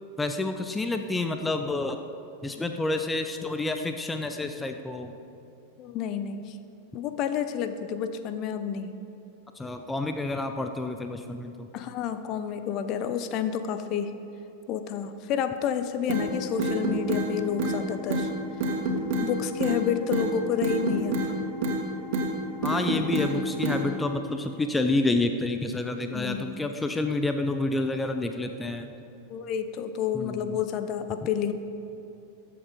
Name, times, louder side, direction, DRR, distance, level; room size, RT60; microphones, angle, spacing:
voice 1, 0.2-2.0 2.4-5.1 9.6-11.7 22.6-28.9 30.1-30.6, left 2 dB, 10° left, 6 dB, 0.8 m, -29 dB
voice 2, 5.8-6.6 6.9-9.0 11.7-14.1 14.7-18.3 19.2-21.3 26.1-26.6 29.3-31.5, left 8 dB, 40° left, 9 dB, 0.9 m, -29 dB
sound 1, 16.1-16.3 16.6-17.3 17.6-17.8 18.1-18.3 18.6-19.3 19.6-19.8 20.1-20.3 20.6-21.3 21.6-21.8 22.1-22.3 22.6-23.3 23.6-23.8, right 2 dB, 45° right, 2.5 m, -27 dB
21.5 x 8.0 x 5.1 m, 2.9 s
figure-of-eight pair, 90°, 0 cm